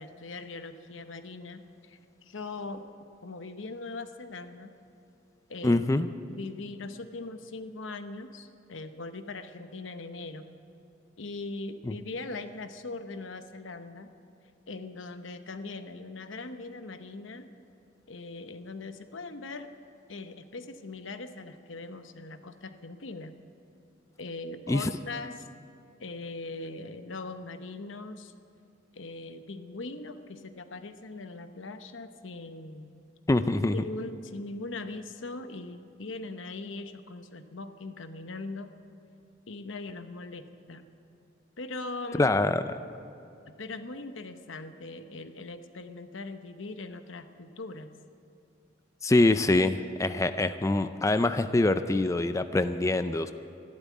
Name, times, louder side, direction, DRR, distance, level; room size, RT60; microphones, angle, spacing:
voice 1, 0.0-4.7 5.5-5.8 6.3-10.5 11.2-14.1 14.7-17.5 18.1-19.7 20.1-23.4 24.2-25.5 26.0-28.3 28.9-32.9 33.8-38.7 39.5-40.9 41.6-42.3 43.5-47.9, left 3 dB, 90° left, 9 dB, 0.9 m, -40 dB
voice 2, 5.6-6.1 24.7-24.9 33.3-33.8 42.2-42.6 49.0-53.3, left 2 dB, 15° left, 11 dB, 0.4 m, -24 dB
14.0 x 12.0 x 8.4 m, 2.7 s
head